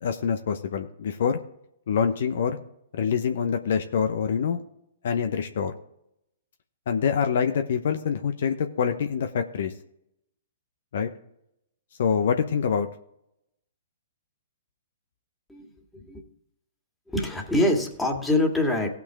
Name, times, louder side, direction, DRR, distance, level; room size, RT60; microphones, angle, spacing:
voice 1, 0.0-1.4 1.9-2.6 2.9-4.6 5.0-5.7 6.9-9.7 10.9-11.1 12.0-12.9, left 7 dB, 60° left, 7 dB, 0.9 m, -25 dB
voice 2, 15.5-16.2 17.1-18.9, left 1 dB, 5° left, 1 dB, 2.0 m, -25 dB
17.5 x 5.9 x 3.6 m, 0.76 s
figure-of-eight pair, 120°, 0 cm